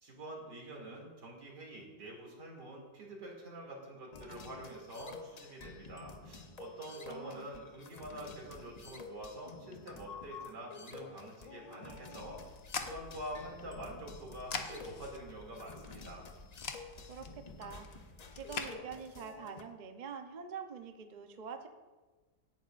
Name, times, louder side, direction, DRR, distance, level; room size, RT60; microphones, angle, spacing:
voice 1, 0.0-16.3, right 1 dB, 70° right, -1 dB, 3.2 m, -46 dB
sound 1, 4.1-19.6, left 4 dB, 70° left, 0.3 m, -51 dB
voice 2, 7.1-7.5 17.1-17.9 18.3-21.7, right 6 dB, 55° right, 6 dB, 0.5 m, -45 dB
sound 2, 12.2-18.7, left 5 dB, 50° left, 0.8 m, -45 dB
17.5 x 9.2 x 2.5 m, 1.3 s
omnidirectional pair, 1.9 m